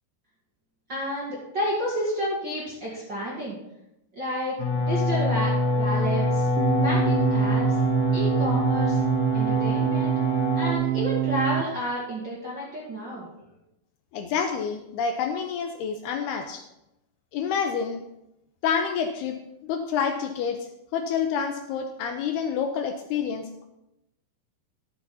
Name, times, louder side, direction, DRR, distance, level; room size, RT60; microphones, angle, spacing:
voice 1, 0.9-3.6 4.1-4.5 4.9-6.5 6.8-7.7 8.1-9.0 9.3-10.1 10.5-13.3, equal, 40° right, -6 dB, 1.7 m, -30 dB
sound 1, 4.6-10.7, left 2 dB, 65° left, 2.0 m, -25 dB
sound 2, 6.6-11.6, right 12 dB, 90° right, 3.1 m, -25 dB
voice 2, 14.1-16.6 17.3-18.0 18.6-23.7, left 6 dB, 80° left, 5 dB, 2.5 m, -28 dB
12.0 x 6.9 x 5.7 m, 0.86 s
omnidirectional pair, 5.1 m